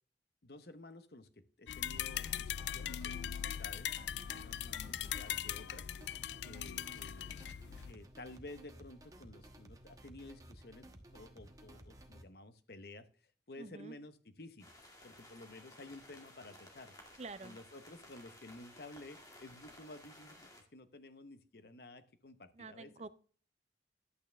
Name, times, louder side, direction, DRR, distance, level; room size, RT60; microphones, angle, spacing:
voice 1, 0.4-3.9 4.3-5.9 6.4-10.9 11.1-13.1 13.5-14.7 15.0-16.9 17.4-22.9, left 2 dB, 60° left, 11 dB, 0.9 m, -53 dB
sound 1, 1.7-7.9, left 10 dB, 80° left, 0.4 m, -40 dB
sound 2, 1.9-12.2, right 1 dB, 20° right, 1.1 m, -56 dB
voice 2, 4.1-4.5 13.6-14.0 17.2-17.6 22.6-23.1, right 3 dB, 35° right, 15 dB, 0.5 m, -48 dB
sound 3, 14.6-20.6, left 1 dB, 20° left, 2.1 m, -57 dB
11.0 x 8.9 x 3.4 m, 0.43 s
head